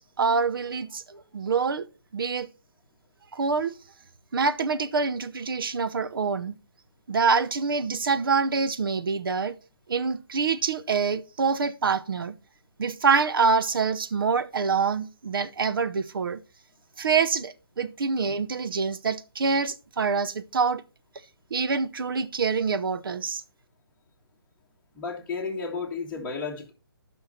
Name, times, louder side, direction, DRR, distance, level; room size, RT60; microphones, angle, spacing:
voice 1, 0.0-1.9 2.1-2.5 3.3-3.7 4.3-6.5 7.1-9.6 9.9-12.3 12.8-16.4 17.0-20.8 21.5-23.4, right 5 dB, 65° right, 0.8 m, -26 dB
voice 2, 24.9-26.7, left 4 dB, 10° left, 1.6 m, -32 dB
11.5 x 5.6 x 4.2 m
hypercardioid pair, 160°, 13 cm